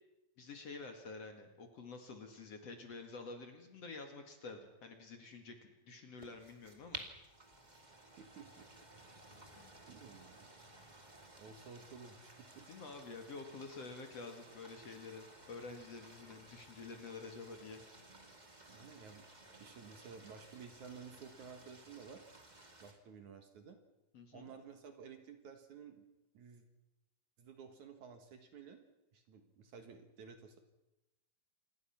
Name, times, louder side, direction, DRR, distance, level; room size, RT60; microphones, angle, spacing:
voice 1, 0.4-5.5 5.9-7.0 9.5-9.7 12.7-17.8 24.1-24.5, left 4 dB, 50° left, 5 dB, 2.6 m, -49 dB
sound 1, 6.2-22.9, right 2 dB, 15° right, 1.4 m, -56 dB
voice 2, 8.2-8.7 9.9-10.5 11.4-13.0 18.7-19.3 19.6-22.2 22.8-23.8 24.3-26.1 26.3-26.6 27.4-28.8 29.1-30.6, right 6 dB, 60° right, 6 dB, 2.8 m, -53 dB
27.5 x 20.5 x 5.9 m, 0.96 s
omnidirectional pair, 4.4 m